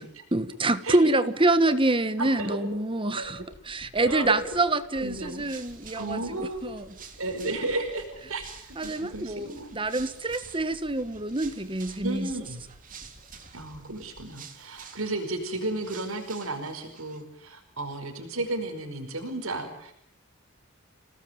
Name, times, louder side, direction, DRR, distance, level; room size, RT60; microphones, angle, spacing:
voice 1, 0.3-6.9 8.8-12.3, right 2 dB, 25° right, 12 dB, 1.4 m, -26 dB
voice 2, 2.2-2.6 3.1-3.3 4.0-4.4 5.0-5.4 5.9-6.7 7.2-9.7 12.0-12.6 13.5-19.9, right 2 dB, 75° right, 5 dB, 5.0 m, -33 dB
sound 1, 3.2-15.6 16.0-16.1, equal, 35° left, 5.2 m, -53 dB
sound 2, 5.0-17.2, right 7 dB, 40° right, 3.5 m, -50 dB
30.0 x 19.0 x 9.3 m, 0.72 s
head